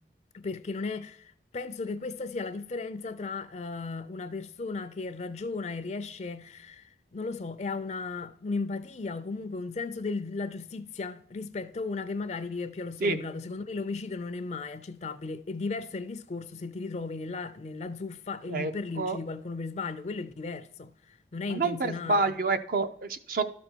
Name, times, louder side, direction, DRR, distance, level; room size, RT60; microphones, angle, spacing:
voice 1, 0.3-22.3, left 3 dB, 40° left, 0.4 m, -35 dB
voice 2, 18.5-19.2 21.5-23.4, right 3 dB, 50° right, 0.5 m, -28 dB
12.5 x 5.2 x 4.5 m
head